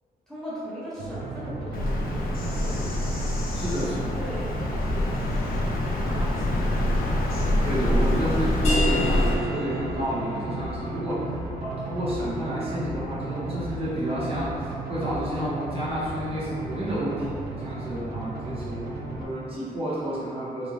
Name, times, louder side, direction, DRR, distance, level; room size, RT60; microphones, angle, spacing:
voice 1, 0.3-3.1 3.8-5.1 5.9-7.0, equal, 5° left, -10 dB, 0.5 m, -39 dB
sound 1, 1.0-19.2, right 2 dB, 90° right, 0.4 m, -35 dB
Bird vocalization bird call bird song, 1.7-9.3, left 1 dB, 75° left, 0.5 m, -26 dB
voice 2, 3.5-4.0 7.6-18.8 19.1-20.7, equal, 40° right, -9 dB, 0.8 m, -30 dB
sound 2, 8.6-14.0, equal, 45° left, 0.8 m, -33 dB
2.6 x 2.4 x 3.1 m, 2.3 s
wide cardioid pair, 170°, 16 cm